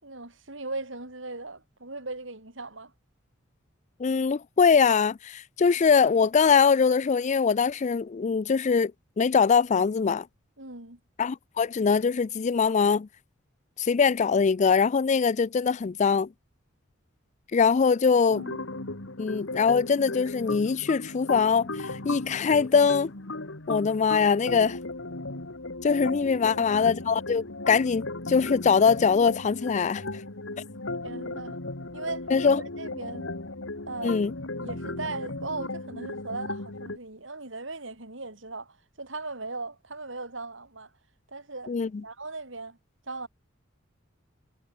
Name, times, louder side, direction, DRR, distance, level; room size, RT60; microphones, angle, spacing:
voice 1, 0.0-2.9 10.6-11.0 18.3-18.6 26.4-26.7 31.0-31.6 31.9-33.3 33.9-34.2 34.6-40.9 41.3-41.8 42.0-42.8 43.1-43.3, right 3 dB, 70° right, 5.8 m, -38 dB
voice 2, 4.0-8.9 9.2-10.3 11.2-13.1 13.8-16.3 17.5-18.4 19.2-23.1 23.7-24.8 25.8-30.0 32.3-32.6 34.0-34.3 41.7-42.0, left 5 dB, 40° left, 0.4 m, -22 dB
sound 1, 18.3-37.0, left 2 dB, 80° left, 2.4 m, -36 dB
head